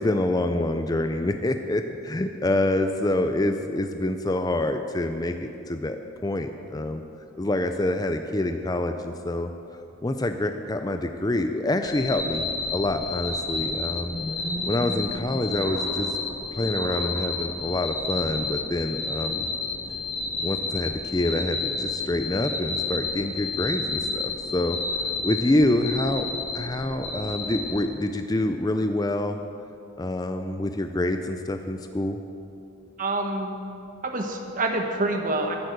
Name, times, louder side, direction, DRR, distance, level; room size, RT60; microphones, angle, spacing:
voice 1, 0.0-7.0 7.4-9.5 10.0-14.2 14.7-16.2 16.5-19.5 20.4-26.3 26.5-29.4 30.0-32.2, left 1 dB, 20° left, 7 dB, 0.4 m, -26 dB
sound 1, 11.8-27.8, left 3 dB, 45° left, 3.7 m, -31 dB
voice 2, 33.0-33.6 34.0-35.6, right 2 dB, 40° right, 3 dB, 1.1 m, -27 dB
11.5 x 8.3 x 8.0 m, 2.6 s
head